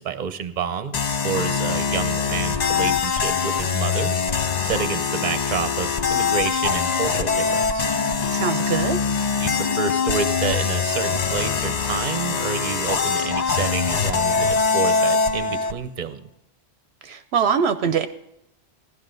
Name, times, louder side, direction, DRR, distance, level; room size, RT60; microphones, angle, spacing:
voice 1, 0.0-4.1 4.6-7.4 7.7-7.9 9.4-16.2, right 7 dB, 45° right, 11 dB, 0.8 m, -29 dB
sound 1, 0.9-15.7, left 5 dB, 45° left, 0.7 m, -23 dB
voice 2, 8.3-9.0 17.0-18.1, right 6 dB, 70° right, 9 dB, 0.8 m, -22 dB
16.0 x 11.5 x 3.9 m, 0.82 s
omnidirectional pair, 1.1 m